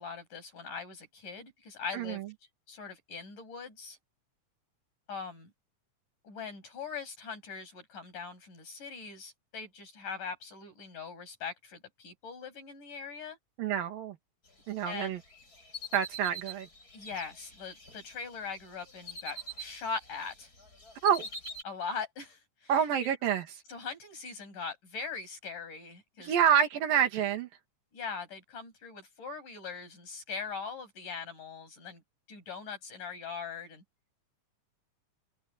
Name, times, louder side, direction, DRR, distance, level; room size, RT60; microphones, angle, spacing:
voice 1, 0.0-2.2 2.7-4.0 5.1-5.5 6.2-13.4 14.9-15.2 16.9-20.5 21.7-22.7 23.7-26.3 26.9-27.1 27.9-32.0 32.3-33.8, left 5 dB, 65° left, 8.9 m, -41 dB
voice 2, 1.9-2.3 13.6-14.2 14.7-15.2 15.9-16.7 21.0-21.3 22.7-23.5 26.2-27.5, right 8 dB, 90° right, 4.0 m, -27 dB
sound 1, 14.9-18.1 18.6-20.3 20.6-21.6, right 1 dB, 25° left, 6.9 m, -44 dB
omnidirectional pair, 3.9 m